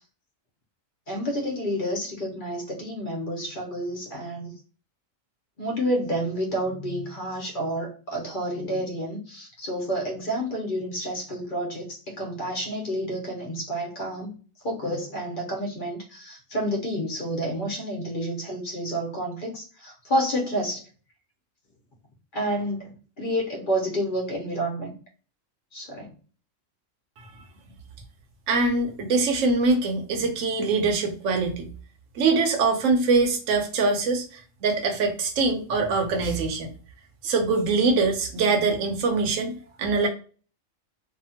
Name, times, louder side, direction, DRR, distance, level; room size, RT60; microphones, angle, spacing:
voice 1, 1.1-4.5 5.6-14.3 14.6-20.8 22.3-24.9 25.7-26.1, equal, 45° left, 0 dB, 1.0 m, -29 dB
voice 2, 28.5-31.7 32.1-36.7 37.2-40.1, right 3 dB, 75° right, 3 dB, 1.0 m, -23 dB
2.8 x 2.4 x 2.7 m, 0.38 s
omnidirectional pair, 1.4 m